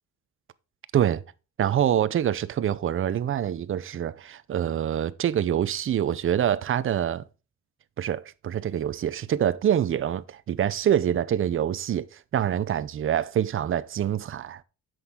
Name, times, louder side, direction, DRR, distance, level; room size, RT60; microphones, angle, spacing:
voice 1, 1.6-7.2 8.0-12.1 12.3-14.6, right 10 dB, 45° right, 0.6 m, -25 dB
7.8 x 6.3 x 3.7 m
cardioid pair, 90°, 30 cm